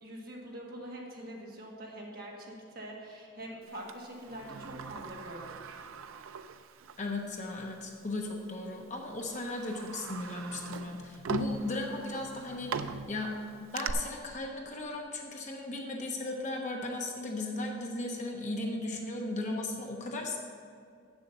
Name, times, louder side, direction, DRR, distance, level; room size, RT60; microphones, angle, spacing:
voice 1, 0.0-5.8, right 1 dB, 45° right, -2 dB, 1.7 m, -44 dB
Sliding door, 3.9-7.1 7.5-7.6 8.5-8.7 9.2-13.9, right 6 dB, 90° right, 0.4 m, -41 dB
voice 2, 7.0-13.3 13.6-20.4, left 2 dB, 35° left, 1 dB, 1.1 m, -36 dB
7.7 x 7.1 x 6.8 m, 2.3 s
head